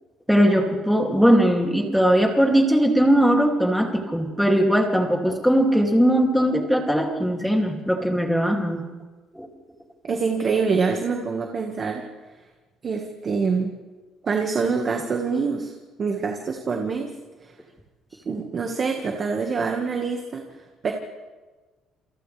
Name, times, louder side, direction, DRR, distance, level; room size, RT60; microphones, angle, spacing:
voice 1, 0.3-8.8 9.3-9.5, equal, ahead, 1 dB, 2.7 m, -19 dB
voice 2, 10.0-12.0 12.8-13.7 14.2-15.7 16.0-17.1 17.4-17.5 18.3-20.4 20.8-20.9, right 5 dB, 30° right, 2 dB, 1.7 m, -25 dB
28.5 x 28.0 x 3.4 m, 1.3 s
cardioid pair, 155°, 0 cm